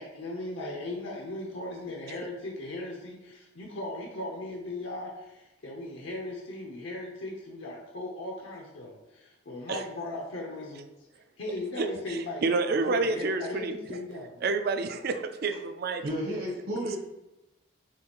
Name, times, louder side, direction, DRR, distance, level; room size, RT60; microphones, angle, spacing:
voice 1, 0.0-10.8 11.4-14.4, left 2 dB, 70° left, -1 dB, 0.7 m, -38 dB
voice 2, 11.8-14.0 14.4-16.0, right 3 dB, 50° right, 8 dB, 0.4 m, -29 dB
voice 3, 16.0-17.0, equal, 75° right, -7 dB, 1.5 m, -32 dB
7.3 x 2.4 x 2.9 m, 0.96 s
head